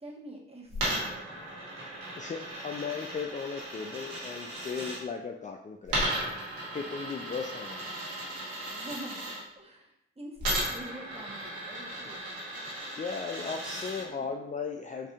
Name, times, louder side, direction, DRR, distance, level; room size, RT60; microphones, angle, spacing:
voice 1, 0.0-1.4 8.7-12.3 14.0-14.3, right 1 dB, 20° right, -1 dB, 1.1 m, -46 dB
Coin (dropping), 0.7-5.0 5.9-9.4 10.4-14.0, right 1 dB, 80° right, 1.3 m, -36 dB
voice 2, 2.2-6.2 6.7-7.9 13.0-15.1, left 5 dB, 25° left, 2 dB, 0.4 m, -37 dB
4.8 x 2.6 x 2.4 m, 0.81 s
hypercardioid pair, 40°, 31 cm